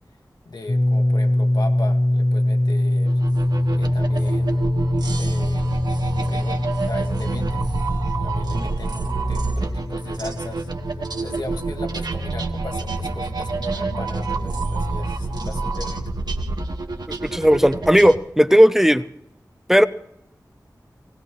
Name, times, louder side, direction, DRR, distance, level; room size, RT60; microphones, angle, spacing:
voice 1, 0.5-3.2 3.7-4.7 5.2-5.8 6.2-7.7 8.2-10.7 11.2-16.0, left 2 dB, 80° left, 3 dB, 2.0 m, -37 dB
sound 1, 0.7-12.4, left 1 dB, 55° left, 1.7 m, -23 dB
sound 2, 3.1-18.1, right 3 dB, 80° right, 1.5 m, -27 dB
voice 2, 17.1-19.0 19.7-19.9, equal, 5° right, 12 dB, 0.6 m, -15 dB
19.0 x 18.5 x 3.1 m, 0.79 s
wide cardioid pair, 70°, 7 cm